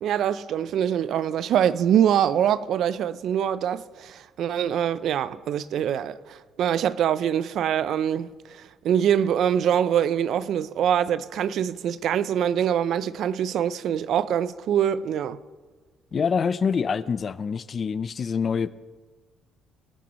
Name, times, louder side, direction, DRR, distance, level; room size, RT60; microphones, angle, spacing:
voice 1, 0.0-15.4, right 9 dB, 65° right, 0.6 m, -24 dB
voice 2, 16.1-18.7, left 6 dB, 40° left, 0.5 m, -25 dB
24.0 x 13.0 x 3.1 m
cardioid pair, 95°, 0 cm